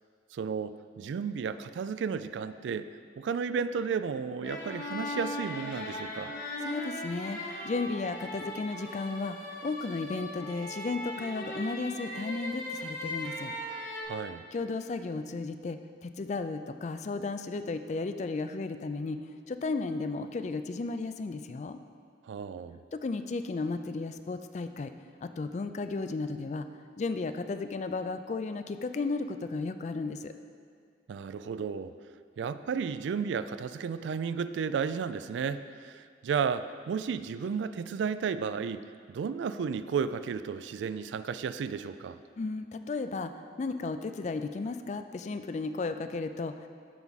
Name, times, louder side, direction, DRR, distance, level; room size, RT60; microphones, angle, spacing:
voice 1, 0.3-2.9 3.2-6.3 14.1-14.4 22.3-22.8 31.1-31.9 32.4-38.8 39.1-42.2, right 6 dB, 80° right, 13 dB, 0.3 m, -33 dB
sound 1, 4.4-14.0, left 1 dB, 75° left, 1.7 m, -38 dB
voice 2, 6.6-9.4 9.6-13.5 14.5-19.2 19.5-21.8 22.9-24.9 25.2-26.7 27.0-30.3 42.4-43.3 43.6-46.7, left 3 dB, 40° left, 9 dB, 0.3 m, -34 dB
12.5 x 4.7 x 4.0 m, 2.1 s
head